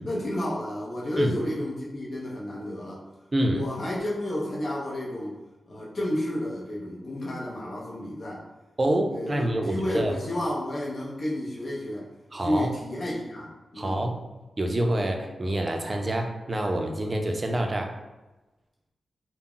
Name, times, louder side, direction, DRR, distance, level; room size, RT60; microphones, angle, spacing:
voice 1, 0.0-3.0 3.4-5.4 5.7-8.5 9.1-12.1 12.4-14.1, left 1 dB, 55° left, -5 dB, 0.6 m, -31 dB
voice 2, 3.3-3.6 8.8-10.1 12.3-12.7 13.8-14.2 14.6-17.9, right 1 dB, 30° right, 3 dB, 0.4 m, -27 dB
2.2 x 2.0 x 3.7 m, 1.1 s
wide cardioid pair, 90°, 0 cm